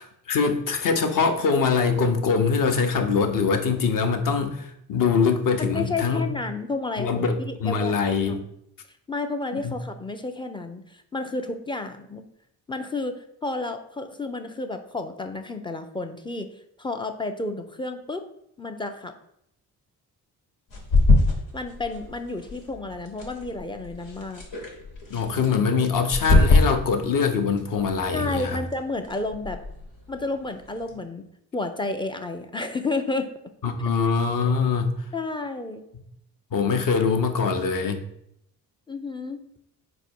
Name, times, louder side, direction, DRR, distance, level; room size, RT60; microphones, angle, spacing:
voice 1, 0.0-6.4 7.0-8.4 9.6-9.7 25.1-28.6 33.6-35.0 36.5-38.0, left 5 dB, 45° left, 7 dB, 0.7 m, -23 dB
voice 2, 5.6-8.4 9.1-12.2 12.7-16.5 16.8-18.2 18.6-19.1 21.5-24.4 28.1-29.6 30.1-31.2 31.5-33.3 35.1-35.8 38.9-39.4, left 3 dB, 10° left, 6 dB, 0.3 m, -31 dB
sound 1, 20.7-31.0, left 3 dB, 75° left, 1.2 m, -25 dB
4.2 x 2.3 x 4.2 m, 0.74 s
hypercardioid pair, 45°, 45 cm